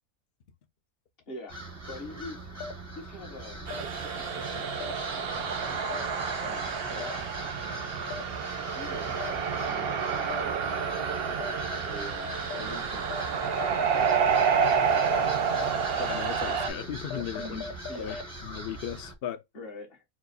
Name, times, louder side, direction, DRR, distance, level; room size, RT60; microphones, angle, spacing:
voice 1, 1.3-1.6 1.9-2.4 2.9-5.8 6.4-7.4 8.7-9.3 9.6-10.8 11.8-15.4 17.3-18.3 19.5-20.0, left 1 dB, 40° left, 1.5 m, -45 dB
sound 1, 1.5-19.1, right 1 dB, 15° right, 0.7 m, -41 dB
sound 2, 2.6-2.7 3.7-3.8 4.8-4.9 5.9-6.0 7.0-7.1 8.1-8.2 9.2-9.3 10.3-10.4 11.4-11.5 12.5-12.6 13.1-13.2 13.6-13.7 14.1-14.2 14.6-14.7 15.1-15.2 15.6-15.7 16.1-16.2 16.6-16.7 17.1-18.2, left 5 dB, 85° left, 1.1 m, -37 dB
sound 3, 3.7-16.7, right 6 dB, 55° right, 0.7 m, -29 dB
voice 2, 16.0-17.6 18.0-18.2 18.4-19.4, left 9 dB, 55° left, 0.6 m, -36 dB
4.6 x 2.0 x 4.0 m
omnidirectional pair, 1.6 m